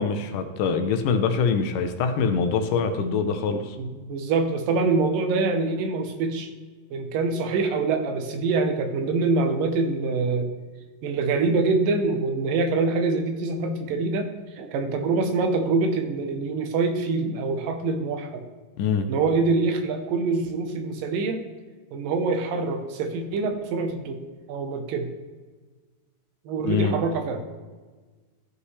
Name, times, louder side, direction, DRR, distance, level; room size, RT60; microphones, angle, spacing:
voice 1, 0.0-3.8 18.8-19.1 26.6-27.0, left 5 dB, 80° left, 7 dB, 2.1 m, -24 dB
voice 2, 3.8-6.5 6.9-10.5 11.0-18.4 19.1-21.4 21.9-24.2 24.5-25.1 26.5-27.4, right 3 dB, 80° right, 5 dB, 2.6 m, -25 dB
15.0 x 5.5 x 3.2 m, 1.3 s
omnidirectional pair, 4.0 m